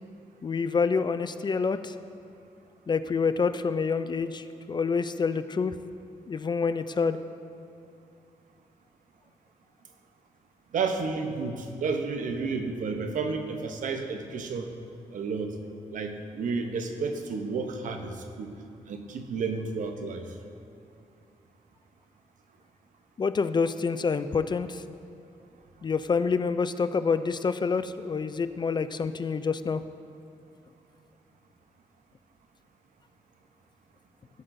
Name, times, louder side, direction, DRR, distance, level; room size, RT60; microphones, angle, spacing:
voice 1, 0.4-1.9 2.9-5.8 6.3-7.2 23.2-24.8 25.8-29.8, left 5 dB, 35° left, 12 dB, 0.4 m, -27 dB
voice 2, 10.7-14.7 15.1-15.5 15.9-18.5 18.9-20.3, right 4 dB, 70° right, 6 dB, 0.8 m, -31 dB
15.5 x 7.6 x 2.7 m, 2.5 s
cardioid pair, 80°, 14 cm